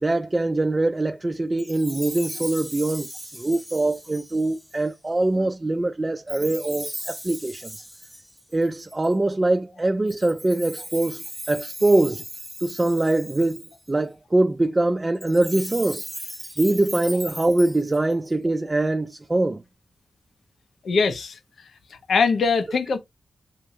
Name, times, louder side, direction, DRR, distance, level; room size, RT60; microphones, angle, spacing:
voice 1, 0.0-7.8 8.5-12.2 12.6-13.6 13.9-16.1 16.6-19.6, right 2 dB, 25° right, 0.3 m, -23 dB
Chime, 1.6-4.9 6.3-9.1 10.1-13.9 15.1-18.3, equal, ahead, 0.7 m, -38 dB
voice 2, 20.8-21.4 21.9-23.0, left 5 dB, 80° left, 0.6 m, -22 dB
4.2 x 2.5 x 2.7 m
cardioid pair, 65°, 0 cm